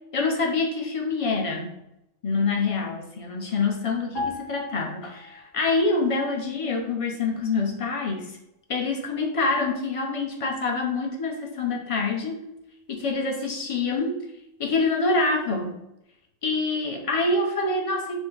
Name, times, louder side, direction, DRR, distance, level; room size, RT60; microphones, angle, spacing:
voice 1, 0.1-1.7 2.2-8.3 8.7-12.5 12.9-14.2 14.6-15.8 16.4-18.2, left 3 dB, 45° left, 1 dB, 0.4 m, -26 dB
sound 1, 4.1-5.8 6.0-6.3, left 2 dB, 70° left, 1.9 m, -35 dB
5.0 x 2.1 x 3.8 m, 0.86 s
omnidirectional pair, 1.4 m